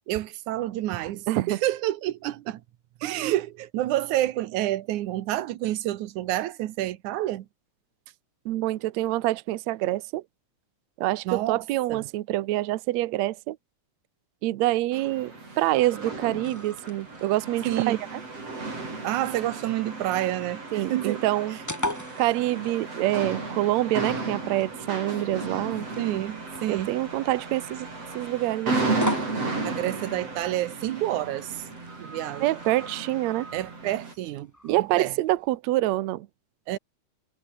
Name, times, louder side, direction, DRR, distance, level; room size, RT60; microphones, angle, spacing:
voice 1, 0.1-2.6 3.0-7.5 11.3-11.6 11.9-12.0 17.7-18.0 19.0-20.6 20.9-21.2 26.0-26.9 29.6-31.6 32.0-32.5 33.5-35.1 36.7-36.8, right 14 dB, 90° right, 2.5 m, -28 dB
voice 2, 1.3-1.6 8.5-10.2 11.0-13.6 14.4-18.2 20.7-21.6 22.2-25.9 26.7-27.9 28.2-29.0 32.4-33.5 34.7-36.3, right 16 dB, 75° right, 2.0 m, -26 dB
sound 1, 14.9-34.1, right 3 dB, 55° right, 8.3 m, -34 dB
sound 2, 15.8-35.6, left 1 dB, 5° left, 1.5 m, -42 dB
omnidirectional pair, 3.4 m